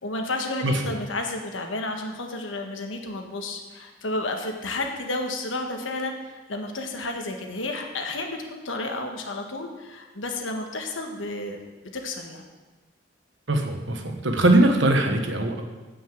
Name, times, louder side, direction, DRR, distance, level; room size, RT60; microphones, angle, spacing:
voice 1, 0.0-12.5, left 2 dB, 90° left, 3 dB, 1.4 m, -32 dB
voice 2, 13.5-15.6, right 1 dB, 75° right, 4 dB, 1.2 m, -21 dB
9.4 x 5.5 x 7.5 m, 1.3 s
head